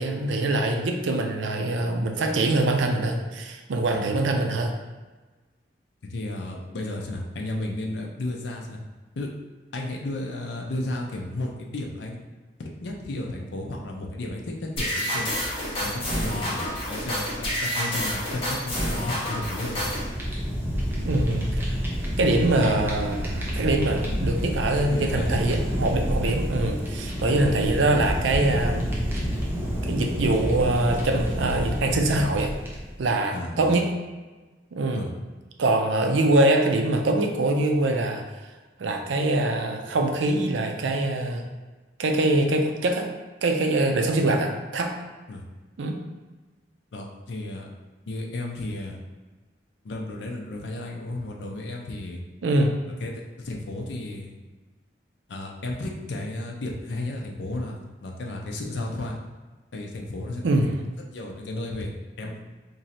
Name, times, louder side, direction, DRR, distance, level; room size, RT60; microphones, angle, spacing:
voice 1, 0.0-4.7 21.0-21.8 22.2-28.9 29.8-32.5 33.0-33.9 34.7-35.0 35.6-38.2 38.8-41.4 42.0-43.1 43.4-44.9 45.8-46.0 52.4-52.7 60.4-60.7, right 2 dB, 85° right, 4 dB, 0.5 m, -23 dB
voice 2, 6.1-8.8 9.2-9.3 9.7-12.2 12.8-15.3 15.8-19.9 24.1-24.2 24.8-25.4 27.3-27.4 33.3-33.7 34.9-35.1 45.3-45.4 46.9-47.7 48.1-49.0 49.8-52.2 53.0-54.3 55.3-57.7 58.0-59.2 59.7-60.5 61.1-61.9 62.2-62.4, left 2 dB, 70° left, 0 dB, 0.5 m, -33 dB
sound 1, 14.8-20.1, equal, 30° left, 1.0 m, -29 dB
Fire, 19.5-33.1, equal, 10° right, 0.6 m, -29 dB
3.1 x 2.6 x 4.1 m, 1.3 s
head